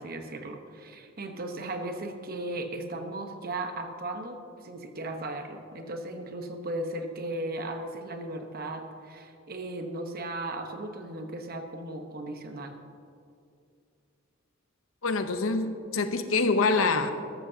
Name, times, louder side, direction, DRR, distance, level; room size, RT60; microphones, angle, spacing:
voice 1, 0.0-12.8, right 2 dB, 50° right, 5 dB, 1.0 m, -36 dB
voice 2, 15.0-17.1, left 3 dB, 80° left, 8 dB, 0.8 m, -25 dB
13.5 x 13.0 x 2.8 m, 2.5 s
head